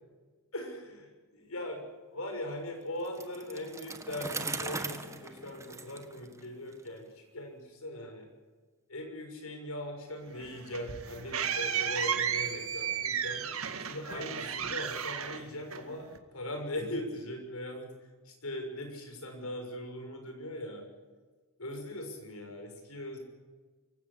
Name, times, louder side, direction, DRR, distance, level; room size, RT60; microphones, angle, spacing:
voice 1, 0.5-1.8 2.1-8.3 8.9-13.4 13.8-17.9 18.2-20.9 21.6-23.2, left 1 dB, 85° left, 4 dB, 6.5 m, -40 dB
Bicycle, 3.0-6.9, right 3 dB, 15° right, 1.6 m, -40 dB
sound 1, 10.3-16.2, right 8 dB, 80° right, 2.0 m, -33 dB
25.0 x 16.0 x 8.5 m, 1.3 s
head